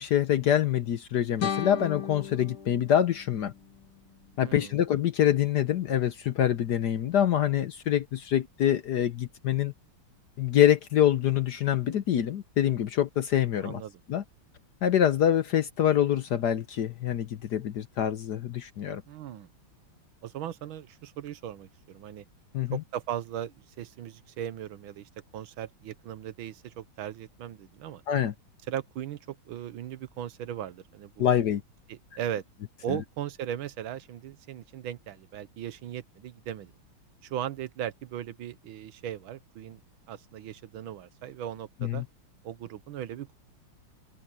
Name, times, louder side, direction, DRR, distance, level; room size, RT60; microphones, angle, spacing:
voice 1, 0.0-3.5 4.4-9.7 10.4-13.8 14.1-14.2 14.8-19.0 22.5-22.8 28.1-28.3 31.2-31.6 32.9-33.0 41.8-42.0, left 10 dB, 65° left, 1.2 m, -25 dB
sound 1, 1.4-4.4, left 8 dB, 80° left, 3.7 m, -36 dB
voice 2, 4.4-4.8 13.6-14.0 19.1-19.5 20.2-22.2 22.7-28.0 28.7-31.3 31.9-32.4 32.8-36.7 37.2-39.8 40.1-42.0 42.4-43.4, right 10 dB, 70° right, 1.6 m, -38 dB
omnidirectional pair, 2.4 m